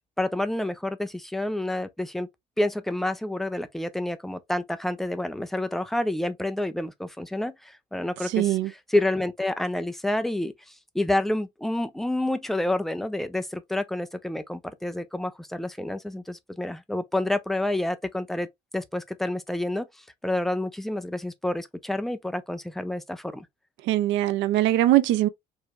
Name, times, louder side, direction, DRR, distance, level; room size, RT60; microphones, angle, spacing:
voice 1, 0.2-2.3 2.6-18.5 18.7-19.9 20.2-23.5, left 1 dB, ahead, 0.5 m, -29 dB
voice 2, 8.3-8.7 23.8-25.3, right 14 dB, 85° right, 0.6 m, -21 dB
4.7 x 3.1 x 2.4 m
cardioid pair, 150°, 19 cm